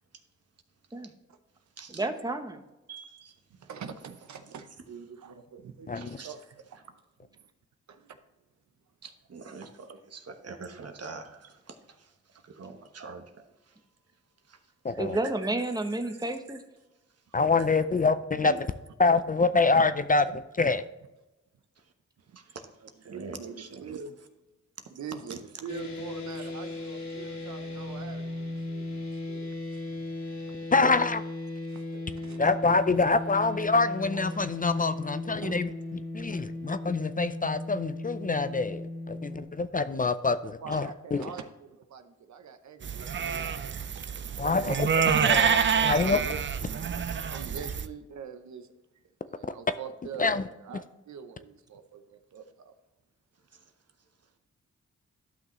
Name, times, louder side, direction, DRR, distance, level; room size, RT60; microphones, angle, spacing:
voice 1, 1.9-2.6 15.0-16.6, right 2 dB, 15° right, 1.1 m, -30 dB
voice 2, 2.9-3.7 5.9-6.3 9.0-13.9 14.4-15.5 16.0-16.6 17.1-17.3 17.6-17.7 18.0-18.1 18.4-18.7 21.7-21.9 22.2-24.0 24.8-24.9 25.3-25.4 26.4-26.5 44.0-44.5 53.3-54.3, right 4 dB, 55° right, 1.1 m, -46 dB
voice 3, 3.6-6.4 6.7-7.5 7.9-8.2 19.7-19.9 20.3-20.4 22.3-22.4 23.1-24.1 24.9-29.8 30.5-30.6 31.7-32.7 35.4-35.6 40.6-44.8 46.0-46.9 47.3-48.7 49.3-52.7, right 6 dB, 75° right, 0.8 m, -44 dB
voice 4, 14.8-15.2 17.3-18.5 19.0-20.2 20.6-20.8 30.7-31.2 32.4-35.7 36.1-41.2 44.4-46.2 50.2-50.4, left 3 dB, 30° left, 0.5 m, -26 dB
sound 1, 25.7-39.4, left 2 dB, 75° left, 2.5 m, -37 dB
sound 2, 42.8-47.9, right 7 dB, 40° right, 0.5 m, -27 dB
12.0 x 5.8 x 3.1 m
cardioid pair, 60°, 29 cm